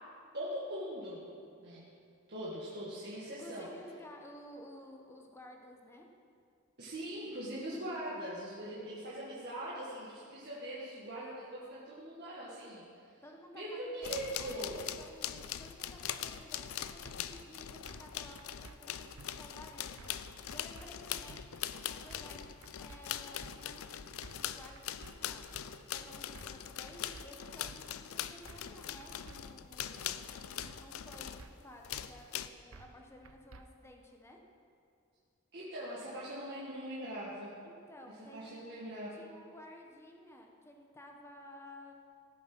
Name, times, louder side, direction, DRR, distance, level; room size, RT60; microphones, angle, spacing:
voice 1, 0.3-1.2 1.6-1.8 2.3-3.7 6.8-12.8 13.5-14.8 35.5-37.5 38.3-39.1, right 1 dB, 50° right, -8 dB, 1.8 m, -41 dB
voice 2, 3.4-6.1 13.2-20.1 20.5-25.5 25.9-34.4 37.6-38.8 39.1-41.9, left 1 dB, 10° left, 1 dB, 1.2 m, -54 dB
sound 1, 14.0-31.5 31.8-32.5, left 10 dB, 80° left, 0.5 m, -42 dB
sound 2, 17.0-17.2 17.9-18.1 18.4-18.8 19.2-19.3 20.0-20.2 20.5-20.9 21.3-21.4 22.1-22.4 22.6-23.0 23.4-23.5 24.2-24.5 24.8-25.1 25.5-25.7 26.3-26.6 26.9-27.3 27.7-27.8 28.5-28.7 29.0-29.4 29.8-29.9 30.6-30.9 31.1-31.5 31.9-32.0 32.7-33.0 33.2-33.6, right 3 dB, 80° right, 0.6 m, -53 dB
16.5 x 6.4 x 6.1 m, 2.4 s
head